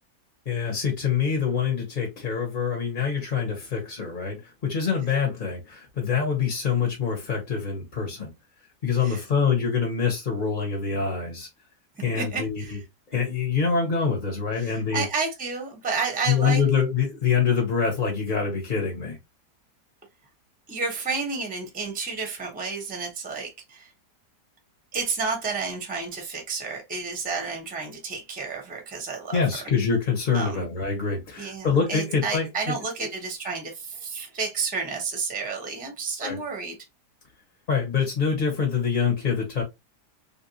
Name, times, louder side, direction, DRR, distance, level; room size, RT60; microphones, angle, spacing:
voice 1, 0.5-8.3 8.8-11.5 12.0-12.8 13.1-15.0 16.3-19.2 29.3-32.7 33.0-33.1 36.2-36.4 37.7-39.6, left 6 dB, 40° left, 0.7 m, -25 dB
voice 2, 12.1-12.8 14.6-16.6 20.7-23.9 24.9-29.4 30.3-30.6 31.4-36.8, right 4 dB, 10° right, 0.5 m, -31 dB
3.4 x 2.5 x 2.7 m
omnidirectional pair, 1.8 m